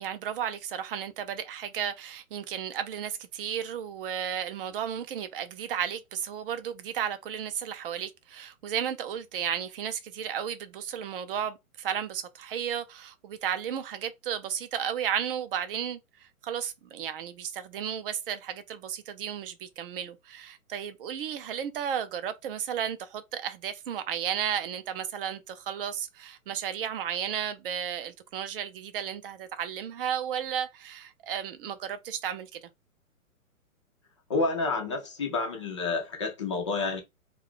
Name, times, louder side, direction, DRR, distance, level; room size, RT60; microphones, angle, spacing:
voice 1, 0.0-32.7, right 9 dB, 40° right, 0.5 m, -33 dB
voice 2, 34.3-37.0, left 3 dB, 25° left, 0.3 m, -29 dB
2.4 x 2.3 x 3.5 m
hypercardioid pair, 135°, 42 cm